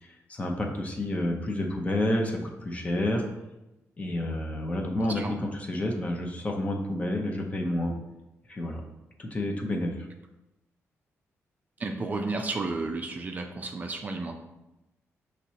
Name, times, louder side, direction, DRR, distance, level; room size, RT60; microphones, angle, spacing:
voice 1, 0.0-3.2 4.0-7.9 8.5-8.8 9.2-10.1, left 1 dB, 25° left, 2 dB, 0.7 m, -29 dB
voice 2, 11.8-14.4, right 3 dB, 30° right, 3 dB, 0.4 m, -32 dB
5.9 x 3.1 x 2.8 m, 0.96 s
cardioid pair, 130°, 5 cm